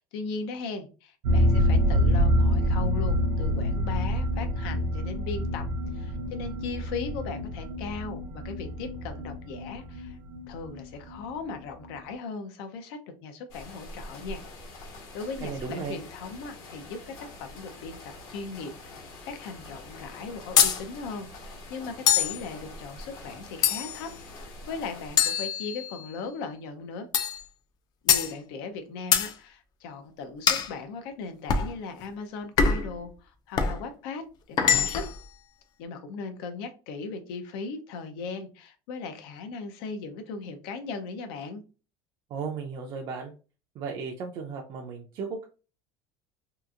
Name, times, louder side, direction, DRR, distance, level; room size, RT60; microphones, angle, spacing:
voice 1, 0.0-5.6 5.9-10.2 10.5-14.4 14.8-27.1 28.0-35.1 35.8-41.6, left 4 dB, 90° left, 0.6 m, -38 dB
sound 1, 1.2-10.8 11.1-11.2 11.5-11.6, equal, 90° right, 0.7 m, -26 dB
sound 2, 13.5-25.2, left 2 dB, 70° left, 1.1 m, -45 dB
voice 2, 15.4-16.0 42.3-43.3 43.7-45.4, right 5 dB, 40° right, 0.4 m, -35 dB
sound 3, 20.6-20.8 22.1-22.4 23.6-24.1 25.2-26.1 27.1-27.4 28.1-28.3 29.1-29.3 30.5-30.7 31.5-31.7 32.6-32.9 33.6-33.8 34.6-35.2, left 7 dB, 35° left, 0.3 m, -23 dB
2.8 x 2.5 x 2.4 m
cardioid pair, 155°, 12 cm